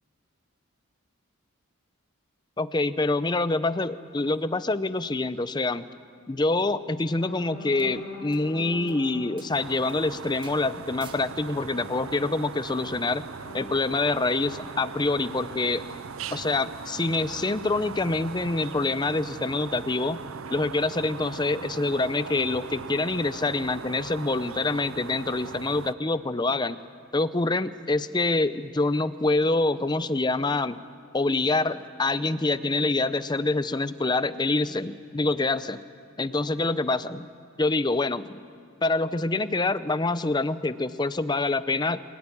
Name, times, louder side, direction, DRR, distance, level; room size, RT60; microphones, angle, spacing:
voice 1, 2.6-5.8 6.3-13.2 13.5-15.8 16.3-20.2 20.5-26.8 27.1-30.8 31.1-35.8 36.2-37.3 37.6-38.4 38.8-42.0, left 2 dB, 20° left, 13 dB, 0.6 m, -26 dB
sound 1, 4.1-4.3 5.3-5.4 7.1-9.5 13.3-15.4, left 2 dB, 45° left, 4.5 m, -44 dB
sound 2, 7.8-7.9 8.3-8.4 8.9-9.0 9.4-9.5 9.9-10.0 10.4-10.6 11.0-11.3 12.7-12.8, right 5 dB, 20° right, 1.9 m, -48 dB
sound 3, 9.5-25.9, right 6 dB, 70° right, 0.6 m, -39 dB
25.5 x 17.5 x 9.9 m, 2.2 s
head